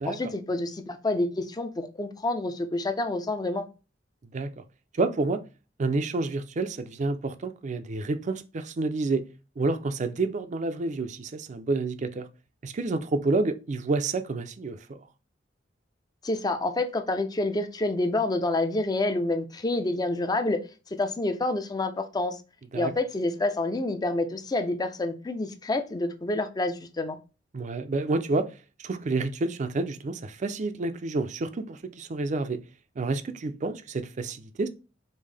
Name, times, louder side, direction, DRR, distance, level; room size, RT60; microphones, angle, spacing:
voice 1, 0.0-3.7 16.2-20.6 21.0-22.4 22.7-27.2, left 2 dB, 20° left, 0.5 m, -28 dB
voice 2, 5.0-5.4 5.8-9.2 9.6-12.3 12.6-15.0 22.7-22.9 27.5-28.5 28.8-32.6 33.0-34.7, right 3 dB, 40° right, 0.4 m, -29 dB
5.4 x 2.1 x 3.3 m
head